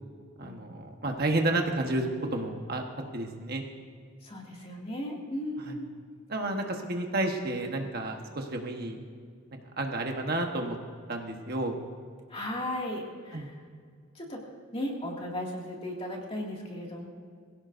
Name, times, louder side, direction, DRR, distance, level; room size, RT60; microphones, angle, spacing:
voice 1, 0.4-2.8 3.1-3.6 5.6-5.8 6.3-9.0 9.5-10.8 11.1-11.8 13.3-13.5, right 2 dB, 45° right, 3 dB, 1.2 m, -31 dB
voice 2, 4.2-5.9 12.3-13.6 14.1-14.4 14.7-17.1, left 1 dB, 25° left, -1 dB, 2.2 m, -36 dB
22.0 x 16.5 x 2.6 m, 2.1 s
head